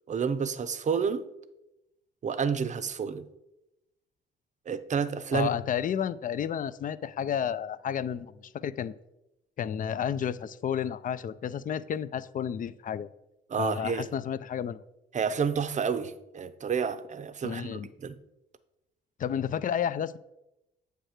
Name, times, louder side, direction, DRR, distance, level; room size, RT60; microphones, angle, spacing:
voice 1, 0.1-1.2 2.2-3.3 4.7-5.5 13.5-14.1 15.1-18.2, right 6 dB, 35° right, 0.6 m, -30 dB
voice 2, 5.3-8.9 9.6-13.1 13.6-14.8 17.4-17.9 19.2-20.2, left 8 dB, 45° left, 0.4 m, -31 dB
7.7 x 3.3 x 6.4 m
cardioid pair, 90°, 20 cm